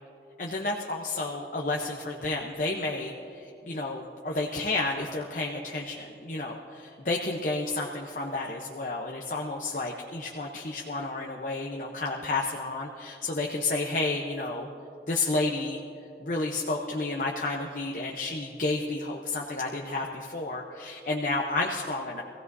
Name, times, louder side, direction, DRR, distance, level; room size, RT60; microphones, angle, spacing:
voice 1, 0.4-14.7 15.1-15.8 16.2-22.2, left 2 dB, 45° left, -1 dB, 0.8 m, -31 dB
24.5 x 16.0 x 2.7 m, 2.8 s
head